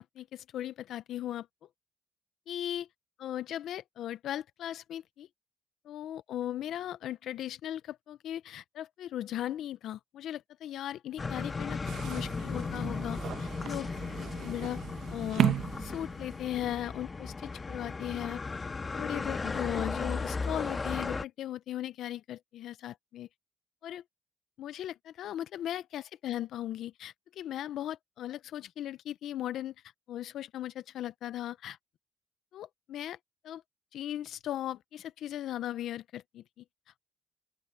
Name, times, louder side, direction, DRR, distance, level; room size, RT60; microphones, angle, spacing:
voice 1, 0.0-1.5 2.5-2.9 3.2-5.3 5.8-13.9 14.2-14.8 15.1-18.5 18.9-23.3 23.8-24.0 24.6-29.7 30.1-31.8 32.5-33.2 33.4-33.6 33.9-36.6, left 12 dB, 75° left, 0.5 m, -38 dB
sound 1, 11.2-21.2, left 4 dB, 30° left, 1.5 m, -36 dB
sound 2, 11.9-16.6, right 10 dB, 75° right, 0.8 m, -34 dB
open air
cardioid pair, 90°, 0 cm